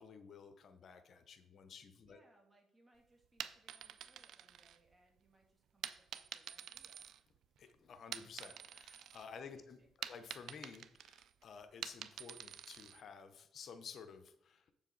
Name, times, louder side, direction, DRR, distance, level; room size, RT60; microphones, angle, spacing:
voice 1, 0.0-2.2 7.6-9.8 10.1-14.6, left 6 dB, 60° left, 9 dB, 0.8 m, -53 dB
voice 2, 2.1-7.1 9.5-10.1, right 1 dB, 25° right, 1 dB, 2.5 m, -71 dB
sound 1, 3.2-5.2 5.8-7.6 8.0-9.3 9.6-13.0, right 9 dB, 75° right, 0.5 m, -48 dB
7.6 x 7.2 x 3.9 m, 0.80 s
cardioid pair, 90°, 0 cm